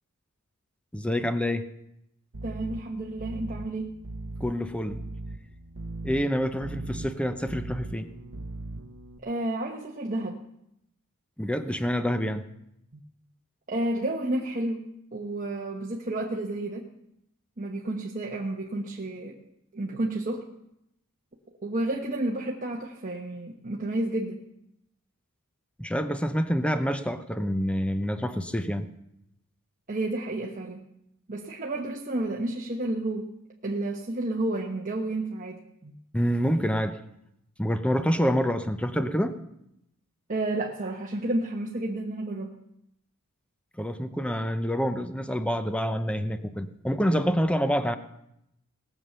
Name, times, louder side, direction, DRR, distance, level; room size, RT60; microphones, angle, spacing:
voice 1, 0.9-1.7 4.4-5.0 6.0-8.1 11.4-12.4 25.8-28.9 36.1-37.0 37.6-39.3 43.8-48.0, equal, 5° left, 10 dB, 0.7 m, -27 dB
sound 1, 2.3-9.2, right 2 dB, 70° right, 0.8 m, -39 dB
voice 2, 2.4-4.0 9.2-10.4 12.9-13.0 13.7-16.9 17.6-19.4 19.7-20.4 21.6-24.5 29.9-30.9 31.3-33.3 33.6-36.0 40.3-42.6, right 1 dB, 40° right, -1 dB, 1.1 m, -31 dB
19.0 x 7.3 x 6.8 m, 0.81 s
head